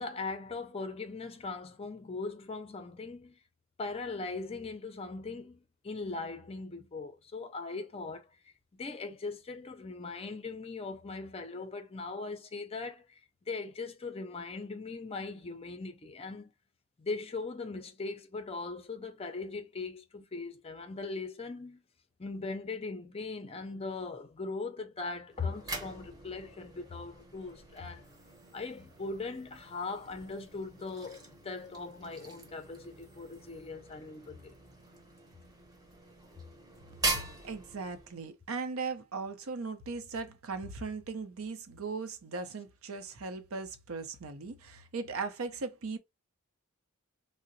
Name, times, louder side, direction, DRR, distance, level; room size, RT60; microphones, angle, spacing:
voice 1, 0.0-3.4 3.8-8.3 8.7-13.2 13.5-16.5 17.0-21.8 22.2-28.1 28.5-34.5, left 3 dB, 25° left, 0.5 m, -40 dB
sound 1, 25.3-38.3, right 3 dB, 20° right, 0.8 m, -42 dB
voice 2, 37.1-46.0, right 4 dB, 75° right, 0.6 m, -38 dB
3.7 x 2.1 x 2.6 m
head